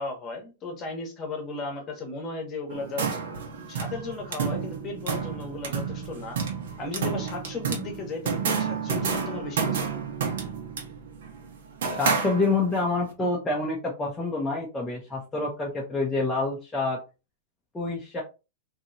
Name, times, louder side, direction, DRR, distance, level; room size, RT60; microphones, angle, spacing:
voice 1, 0.0-3.1 3.7-6.4 6.8-10.0, left 3 dB, 25° left, 3 dB, 0.9 m, -35 dB
sound 1, 2.7-12.8, right 6 dB, 75° right, 1.0 m, -30 dB
voice 2, 12.0-17.0 17.7-18.2, left 3 dB, 10° left, -4 dB, 0.5 m, -27 dB
2.9 x 2.7 x 2.6 m, 0.29 s
supercardioid pair, 160°, 0 cm